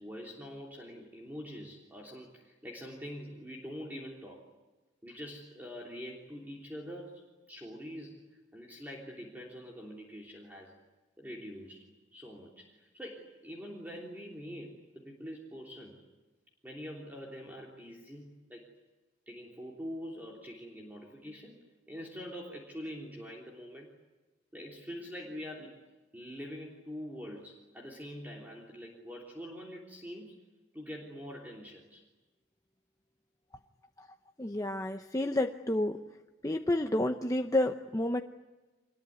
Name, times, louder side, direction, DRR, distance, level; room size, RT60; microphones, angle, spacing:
voice 1, 0.0-4.5 5.0-10.8 11.2-16.0 16.6-18.7 19.3-23.9 24.5-25.8 26.1-30.4 30.7-32.0, equal, 10° right, -1 dB, 3.4 m, -45 dB
voice 2, 34.4-36.0 36.4-38.2, left 1 dB, 15° left, 5 dB, 0.8 m, -30 dB
26.0 x 21.0 x 9.6 m, 1.2 s
head